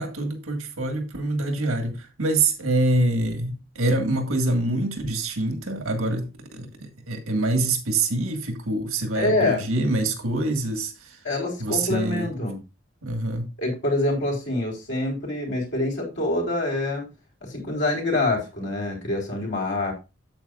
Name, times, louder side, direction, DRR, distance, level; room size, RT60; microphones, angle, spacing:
voice 1, 0.0-11.2 11.6-12.3 13.0-13.5, right 2 dB, 90° right, 1.8 m, -25 dB
voice 2, 9.2-9.6 11.2-12.6 13.6-17.1 17.4-19.9, left 2 dB, 55° left, 3.7 m, -26 dB
8.8 x 8.0 x 2.4 m
head